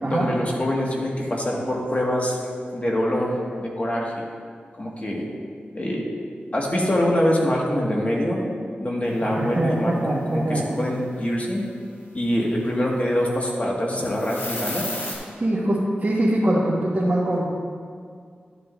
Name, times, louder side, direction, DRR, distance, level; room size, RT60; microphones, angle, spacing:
voice 1, 0.0-2.4 2.7-4.2 4.8-5.2 5.7-6.0 6.5-8.4 8.8-11.6 12.1-14.9, equal, 40° left, -3 dB, 1.9 m, -24 dB
voice 2, 9.2-10.6 15.4-17.4, right 1 dB, 45° right, -8 dB, 1.6 m, -23 dB
sound 1, 14.1-15.1, left 1 dB, 80° left, 2.3 m, -31 dB
12.5 x 8.3 x 2.7 m, 2.1 s
cardioid pair, 50°, 4 cm